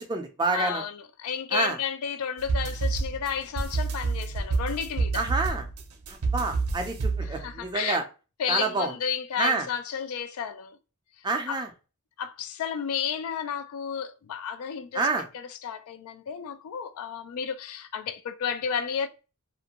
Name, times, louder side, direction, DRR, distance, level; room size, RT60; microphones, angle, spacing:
voice 1, 0.0-0.8 1.5-1.8 5.1-5.6 6.1-8.0 8.5-8.9 9.4-9.6 11.2-11.7 14.9-15.2, right 3 dB, 20° right, 0.4 m, -28 dB
voice 2, 0.5-5.3 7.2-8.0 8.4-10.8 11.5-11.6 12.2-19.1, left 7 dB, 75° left, 0.3 m, -32 dB
sound 1, 2.4-7.7, right 4 dB, 80° right, 0.5 m, -29 dB
2.5 x 2.1 x 2.8 m
head